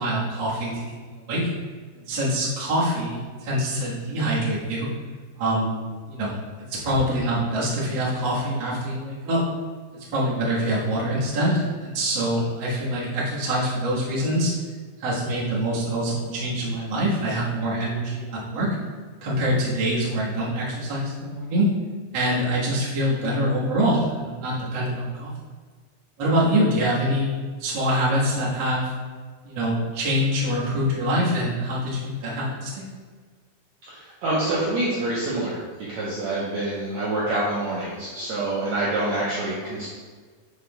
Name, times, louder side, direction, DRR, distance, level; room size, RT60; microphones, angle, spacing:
voice 1, 0.0-1.4 2.0-4.9 5.4-5.8 6.1-6.4 6.7-9.4 9.9-14.5 15.0-18.7 19.2-21.7 22.1-25.3 26.2-27.3 27.6-28.9 29.4-32.8, equal, 65° right, -7 dB, 1.1 m, -25 dB
voice 2, 33.9-39.9, right 2 dB, 85° right, -7 dB, 1.6 m, -26 dB
10.5 x 4.8 x 2.3 m, 1.5 s
omnidirectional pair, 4.7 m